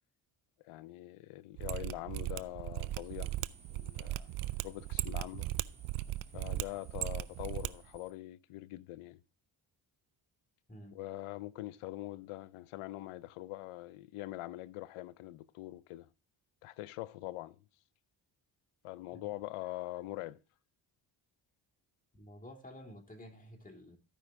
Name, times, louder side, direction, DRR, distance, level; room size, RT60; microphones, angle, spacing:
voice 1, 0.6-3.3 3.7-4.3 4.6-5.5 6.3-9.2 10.9-16.1 16.6-17.6 18.8-20.4, left 17 dB, 85° left, 0.7 m, -43 dB
Mechanisms, 1.6-7.7 7.9-8.0, right 16 dB, 80° right, 0.6 m, -37 dB
sound 1, 2.8-8.1, right 2 dB, 10° right, 2.0 m, -61 dB
voice 2, 22.1-24.0, equal, 15° left, 2.6 m, -51 dB
14.0 x 5.3 x 3.6 m
supercardioid pair, 60°, 49 cm